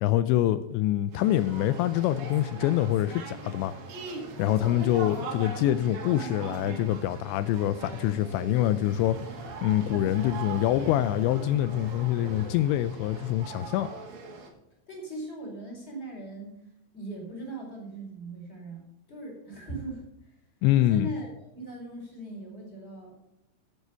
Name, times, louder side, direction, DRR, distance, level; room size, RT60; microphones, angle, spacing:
voice 1, 0.0-3.7 4.4-9.2 9.6-13.9 20.6-21.1, left 13 dB, 90° left, 13 dB, 2.6 m, -25 dB
sound 1, 1.1-14.5, right 3 dB, 55° right, 3.3 m, -40 dB
voice 2, 14.9-16.6 16.9-20.1 20.9-23.2, right 2 dB, 15° left, -1 dB, 4.3 m, -39 dB
14.0 x 8.3 x 5.6 m, 0.85 s
omnidirectional pair, 5.8 m